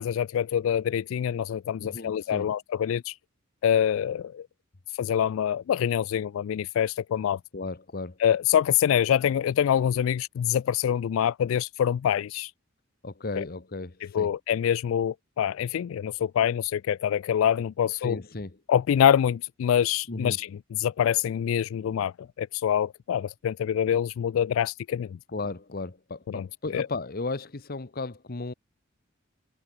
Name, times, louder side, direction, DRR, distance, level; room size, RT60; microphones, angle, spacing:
voice 1, 0.0-3.2 3.6-4.5 4.9-7.4 8.2-12.5 13.4-13.5 14.1-18.2 18.7-25.2 26.3-26.5 26.7-26.9, left 9 dB, 75° left, 0.3 m, -25 dB
voice 2, 1.8-2.5 7.5-8.2 13.0-14.3 18.0-18.6 20.1-20.4 25.3-28.5, left 3 dB, 45° left, 1.1 m, -35 dB
head